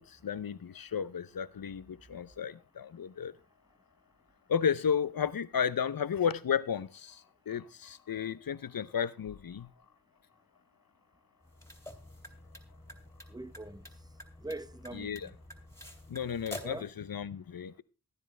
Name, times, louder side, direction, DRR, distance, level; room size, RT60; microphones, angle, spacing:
voice 1, 0.0-3.3 4.5-9.7 15.0-15.2 16.1-16.8 17.1-17.8, left 7 dB, 70° left, 0.7 m, -33 dB
sound 1, 11.4-16.9, left 1 dB, 10° left, 2.7 m, -48 dB
voice 2, 13.3-14.1 14.4-15.3 16.6-16.9, right 2 dB, 10° right, 1.0 m, -43 dB
16.5 x 10.0 x 3.3 m
cardioid pair, 45°, 36 cm